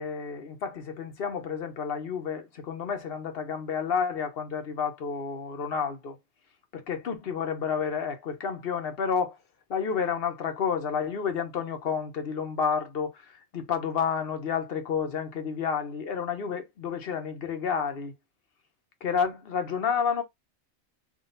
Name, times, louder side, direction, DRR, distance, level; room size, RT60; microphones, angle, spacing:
voice 1, 0.0-6.2 6.7-9.4 9.7-18.1 19.0-20.2, left 6 dB, 50° left, 1.0 m, -30 dB
3.8 x 2.5 x 3.9 m
omnidirectional pair, 1.4 m